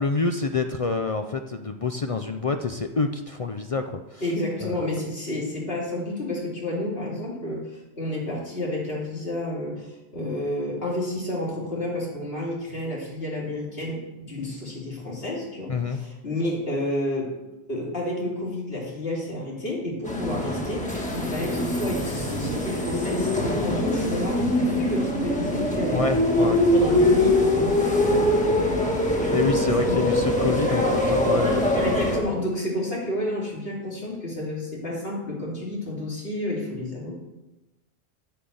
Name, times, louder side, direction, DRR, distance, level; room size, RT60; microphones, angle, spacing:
voice 1, 0.0-4.2 4.6-4.8 15.7-16.0 25.9-26.6 29.3-32.0, left 4 dB, 45° left, 7 dB, 0.5 m, -27 dB
voice 2, 4.2-14.0 14.3-17.3 17.7-20.8 21.1-26.0 26.4-29.5 29.8-30.0 31.7-37.2, left 1 dB, 65° left, -3 dB, 3.2 m, -30 dB
sound 1, 20.1-32.2, left 1 dB, 5° left, 1.6 m, -23 dB
10.0 x 5.6 x 7.9 m, 1.0 s
omnidirectional pair, 1.1 m